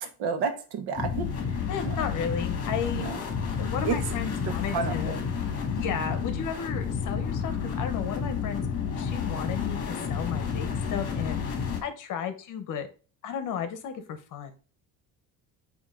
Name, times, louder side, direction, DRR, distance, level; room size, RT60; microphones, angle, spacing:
voice 1, 0.2-2.0 2.9-3.2 3.8-4.0 4.4-5.1, right 5 dB, 85° right, 1.2 m, -31 dB
sound 1, 1.0-11.8, left 6 dB, 40° left, 1.6 m, -30 dB
voice 2, 1.7-3.1 3.6-5.2 5.7-8.6 9.0-11.4 11.8-12.9 13.2-14.5, left 7 dB, 55° left, 1.0 m, -34 dB
8.7 x 2.9 x 3.8 m
cardioid pair, 160°, 37 cm